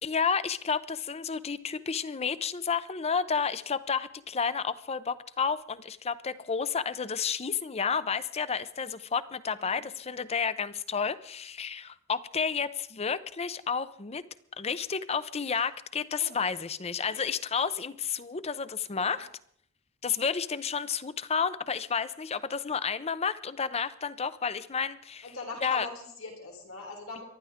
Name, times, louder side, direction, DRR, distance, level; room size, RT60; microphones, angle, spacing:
voice 1, 0.0-14.2 14.6-19.3 20.0-25.3 25.6-25.9, left 6 dB, 30° left, 15 dB, 0.6 m, -31 dB
voice 2, 18.9-19.3 25.2-27.2, left 3 dB, 85° left, 1 dB, 3.8 m, -42 dB
24.5 x 12.0 x 3.6 m, 0.65 s
head